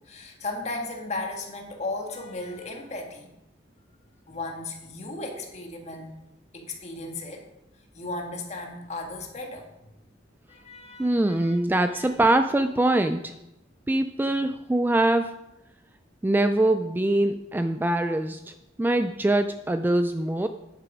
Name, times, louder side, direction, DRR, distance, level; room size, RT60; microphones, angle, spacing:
voice 1, 0.1-3.3 4.3-6.1 6.5-7.4 7.9-9.7 10.5-11.6 11.9-12.1, left 2 dB, 35° left, 2 dB, 1.7 m, -35 dB
voice 2, 11.0-13.4 13.9-15.3 16.2-20.5, right 1 dB, 10° right, 9 dB, 0.3 m, -23 dB
9.9 x 8.3 x 5.0 m, 0.90 s
head